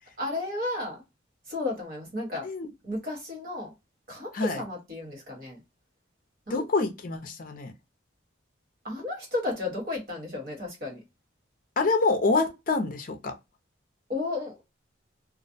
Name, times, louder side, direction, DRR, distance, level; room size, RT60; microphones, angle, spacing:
voice 1, 0.2-1.0 1.5-2.5 2.8-3.7 4.1-5.6 6.5-6.7 8.8-11.0 14.1-14.6, left 2 dB, 50° right, 1.3 m, -33 dB
voice 2, 6.5-7.7 11.8-13.3, left 3 dB, 45° left, 0.5 m, -26 dB
2.4 x 2.0 x 2.6 m
head